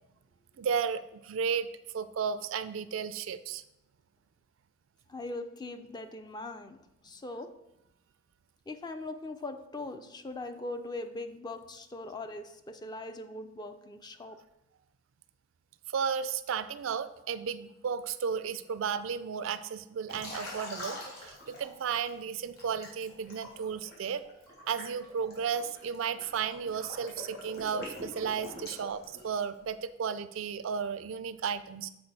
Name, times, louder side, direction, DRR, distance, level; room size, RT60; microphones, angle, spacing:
voice 1, 0.6-1.7 1.9-3.6 15.9-24.2 24.7-31.9, right 6 dB, 65° right, 13 dB, 0.4 m, -34 dB
voice 2, 5.1-6.8 7.0-7.5 8.7-14.4, left 2 dB, 20° left, 8 dB, 0.4 m, -40 dB
Liquid, 20.1-22.1 22.6-29.6, left 1 dB, 50° left, 2.7 m, -44 dB
7.8 x 4.6 x 4.1 m, 0.87 s
head